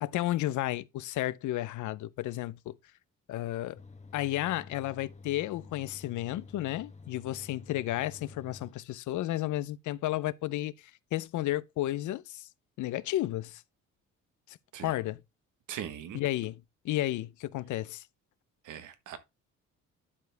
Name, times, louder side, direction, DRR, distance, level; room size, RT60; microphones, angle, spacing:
voice 1, 0.0-2.7 3.3-3.8 4.1-10.7 11.1-12.5 12.8-13.6 14.5-15.2 16.1-18.0, left 15 dB, 80° left, 0.6 m, -32 dB
sound 1, 3.8-8.7, left 4 dB, 25° left, 1.1 m, -50 dB
voice 2, 15.7-16.2 18.6-19.2, right 9 dB, 80° right, 1.3 m, -40 dB
11.0 x 4.8 x 3.3 m
cardioid pair, 90°, 30 cm